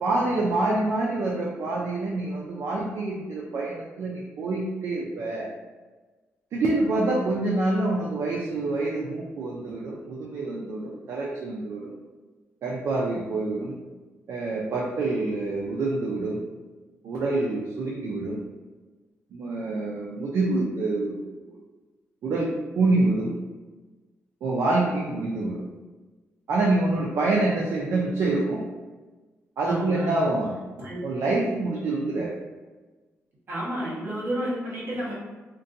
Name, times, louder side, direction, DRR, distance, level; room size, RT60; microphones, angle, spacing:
voice 1, 0.0-5.5 6.5-11.9 12.6-13.8 14.3-16.4 17.0-18.4 19.3-21.6 22.2-23.4 24.4-25.6 26.5-28.6 29.6-30.5 31.0-32.3, right 2 dB, 65° right, -4 dB, 0.4 m, -26 dB
voice 2, 29.6-30.2 30.8-31.0 31.7-32.2 33.5-35.1, right 1 dB, 50° right, -7 dB, 1.1 m, -31 dB
2.5 x 2.2 x 2.6 m, 1.3 s
cardioid pair, 115°, 5 cm